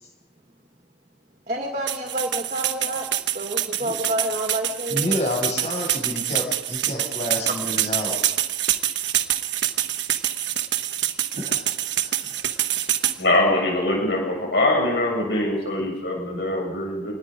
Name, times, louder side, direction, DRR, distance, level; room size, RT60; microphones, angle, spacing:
voice 1, 1.5-5.2 7.8-8.2, right 1 dB, 40° right, 2 dB, 2.0 m, -29 dB
sound 1, 1.9-13.2, right 12 dB, 70° right, 1.2 m, -26 dB
voice 2, 4.9-8.2 8.5-8.6 11.3-12.8, left 1 dB, 35° left, 0 dB, 6.7 m, -30 dB
voice 3, 13.2-17.2, left 1 dB, 65° left, 0 dB, 7.2 m, -23 dB
26.5 x 20.0 x 5.2 m, 1.1 s
head